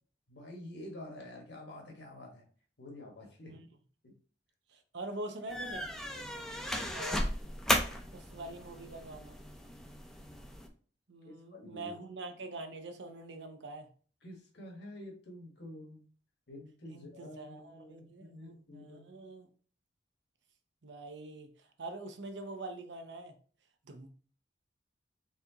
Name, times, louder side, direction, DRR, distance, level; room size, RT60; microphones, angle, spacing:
voice 1, 0.3-2.4 2.8-3.6 4.0-4.1 6.7-6.9 11.2-11.9 14.2-16.0 16.5-19.1, left 1 dB, 65° left, 1.4 m, -48 dB
voice 2, 4.7-5.9 6.9-7.3 8.1-9.4 11.1-13.9 16.9-19.5 20.8-23.4 23.8-24.1, right 2 dB, 70° right, 0.7 m, -44 dB
sound 1, 5.5-10.7, equal, ahead, 0.5 m, -36 dB
4.3 x 3.6 x 2.8 m
head